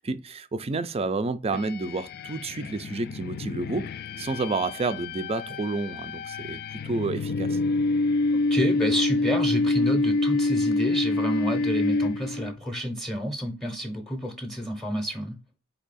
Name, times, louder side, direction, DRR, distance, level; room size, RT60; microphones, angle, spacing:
voice 1, 0.0-3.9 4.2-7.6, right 3 dB, 30° right, 0.4 m, -30 dB
sound 1, 1.5-12.6, left 2 dB, 45° left, 0.3 m, -27 dB
voice 2, 8.5-15.4, equal, ahead, 0.7 m, -29 dB
4.6 x 2.8 x 4.0 m
head